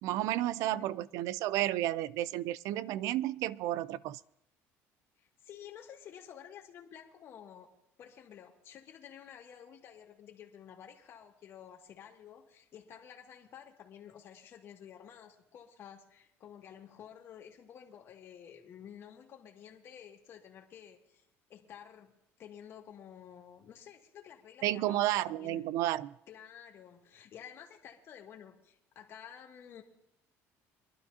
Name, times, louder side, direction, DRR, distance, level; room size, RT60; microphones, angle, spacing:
voice 1, 0.0-4.2 24.6-26.2, right 14 dB, 70° right, 20 dB, 0.4 m, -32 dB
voice 2, 5.2-7.7 8.0-21.2 21.5-22.1 22.4-25.7 26.3-29.8, left 9 dB, 45° left, 1 dB, 2.1 m, -52 dB
24.0 x 12.0 x 2.8 m, 0.82 s
cardioid pair, 135°, 6 cm